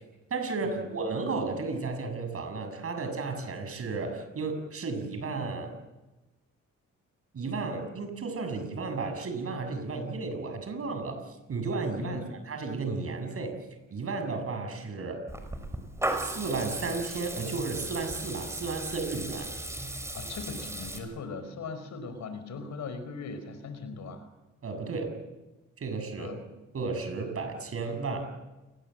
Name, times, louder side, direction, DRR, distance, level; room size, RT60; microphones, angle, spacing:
voice 1, 0.3-5.7 7.3-13.6 13.9-15.3 16.2-19.5 24.6-25.1 25.8-26.4 26.7-28.3, right 4 dB, 50° right, 6 dB, 7.2 m, -33 dB
Water tap faucet / Liquid, 15.3-21.0, right 1 dB, 10° right, 5.5 m, -36 dB
voice 2, 20.1-24.3 26.2-26.4, left 4 dB, 70° left, 10 dB, 4.9 m, -39 dB
28.5 x 21.0 x 7.8 m, 1.1 s
cardioid pair, 90°, 30 cm